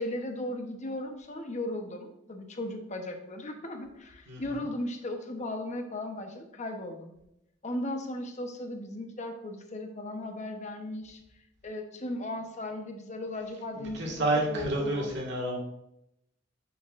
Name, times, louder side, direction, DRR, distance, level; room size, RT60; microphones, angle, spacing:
voice 1, 0.0-7.1 7.6-11.2 11.6-15.1, left 1 dB, 35° left, 4 dB, 0.9 m, -36 dB
voice 2, 13.8-15.6, right 1 dB, 60° right, -2 dB, 1.8 m, -29 dB
8.1 x 6.8 x 2.5 m, 0.84 s
head